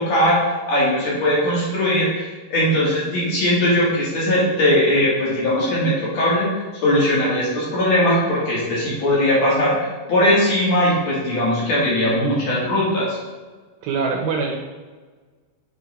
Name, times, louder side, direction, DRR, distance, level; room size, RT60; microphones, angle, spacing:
voice 1, 0.0-6.5 6.8-13.2, left 1 dB, 45° left, -6 dB, 3.1 m, -19 dB
voice 2, 13.8-14.6, right 4 dB, 75° right, 0 dB, 2.6 m, -23 dB
8.7 x 4.4 x 5.0 m, 1.4 s
omnidirectional pair, 4.7 m